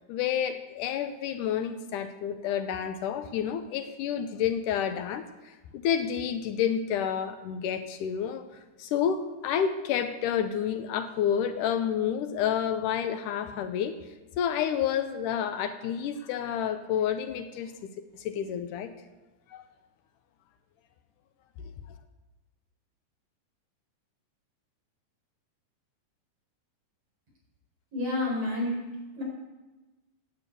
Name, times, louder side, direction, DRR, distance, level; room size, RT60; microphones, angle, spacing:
voice 1, 0.1-8.5 8.8-14.0 14.4-17.7 18.2-18.9 19.5-19.6 21.6-21.7, left 8 dB, 80° left, 9 dB, 2.2 m, -29 dB
voice 2, 27.9-28.8 29.2-29.3, left 2 dB, 45° right, -3 dB, 5.9 m, -29 dB
13.0 x 8.9 x 8.4 m, 1.2 s
omnidirectional pair, 3.8 m